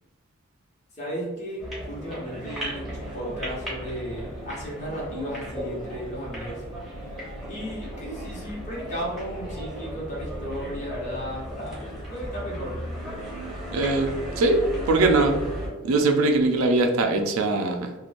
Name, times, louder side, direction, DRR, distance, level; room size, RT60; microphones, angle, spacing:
voice 1, 1.0-1.6 1.9-6.6 7.5-12.7, equal, 35° left, -5 dB, 0.9 m, -34 dB
sound 1, 1.6-15.7, equal, ahead, 0.7 m, -35 dB
voice 2, 13.7-14.1 14.4-14.6 14.9-15.3 15.8-18.0, right 2 dB, 75° right, 4 dB, 0.4 m, -21 dB
2.9 x 2.2 x 2.5 m, 1.2 s
head